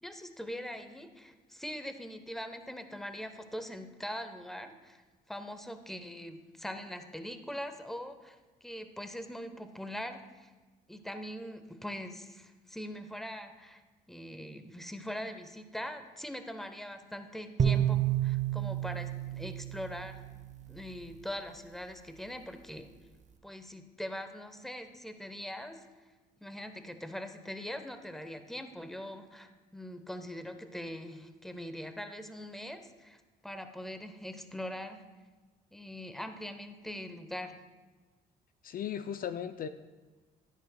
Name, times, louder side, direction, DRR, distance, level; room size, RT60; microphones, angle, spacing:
voice 1, 0.0-5.0 5.3-10.5 10.9-13.8 14.1-20.2 20.7-22.9 23.4-25.8 26.4-35.0 35.7-37.6, equal, ahead, 8 dB, 0.9 m, -42 dB
sound 1, 17.6-20.9, right 10 dB, 40° right, 0.7 m, -30 dB
voice 2, 38.6-39.7, left 9 dB, 50° left, 11 dB, 0.4 m, -36 dB
10.5 x 9.9 x 2.2 m, 1.3 s
hypercardioid pair, 60°, 19 cm